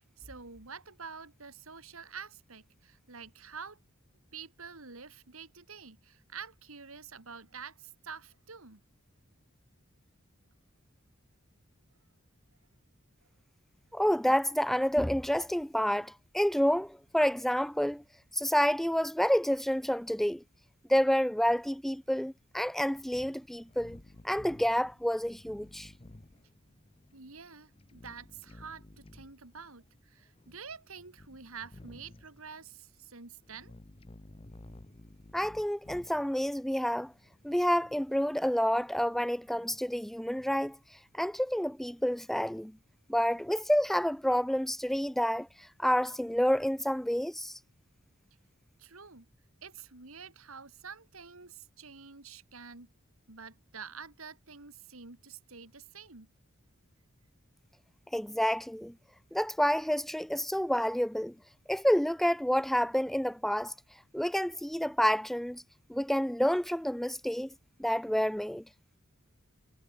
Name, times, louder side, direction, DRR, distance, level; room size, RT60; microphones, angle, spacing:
voice 1, 0.2-3.8 4.3-8.8 27.1-33.7 48.8-49.3 49.6-52.9 53.3-56.3, right 5 dB, 85° right, 2.8 m, -48 dB
voice 2, 13.9-18.0 18.3-20.4 20.9-24.0 24.2-25.9 35.3-37.1 37.4-40.8 41.1-42.7 43.1-45.5 45.8-47.6 58.1-58.9 59.3-61.3 61.7-63.7 64.1-65.6 65.9-67.5 67.8-68.6, equal, ahead, 0.3 m, -29 dB
sound 1, 22.9-38.0, left 1 dB, 25° left, 1.0 m, -54 dB
head